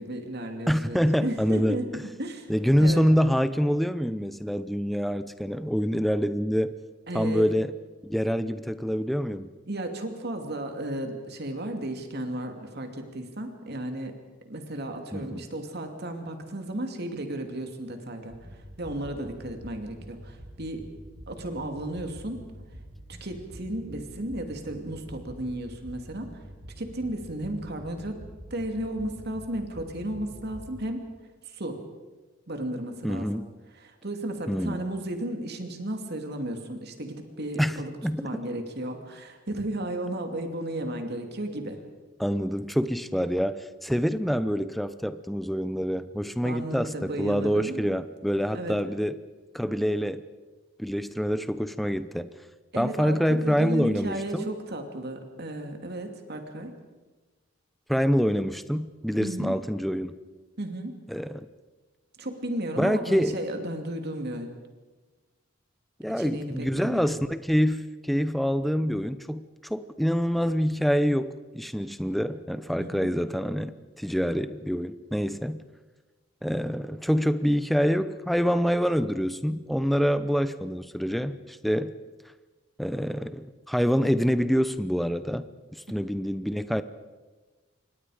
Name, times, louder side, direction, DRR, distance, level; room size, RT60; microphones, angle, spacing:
voice 1, 0.0-2.5 2.8-3.1 7.1-7.5 9.7-14.2 14.5-20.9 21.3-22.5 23.1-26.4 26.8-28.2 28.5-31.1 31.4-31.9 32.5-33.4 33.7-37.9 38.2-41.8 46.4-47.9 48.5-48.8 52.7-56.7 59.2-59.6 60.6-61.0 62.2-64.5 66.2-67.1 72.8-73.1 85.9-86.0, right 1 dB, 50° right, 5 dB, 2.7 m, -34 dB
voice 2, 0.7-1.8 2.5-6.7 7.1-7.7 8.0-9.5 15.1-15.4 33.0-33.5 34.5-34.8 37.6-37.8 38.0-38.4 42.2-49.2 49.5-50.2 50.8-52.3 52.8-54.5 57.9-60.1 61.1-61.5 62.8-63.4 66.0-75.6 76.4-81.9 82.8-86.8, equal, ahead, 12 dB, 0.7 m, -26 dB
sound 1, 18.3-30.9, equal, 35° right, 4.8 m, -46 dB
28.0 x 24.0 x 5.1 m, 1.3 s
head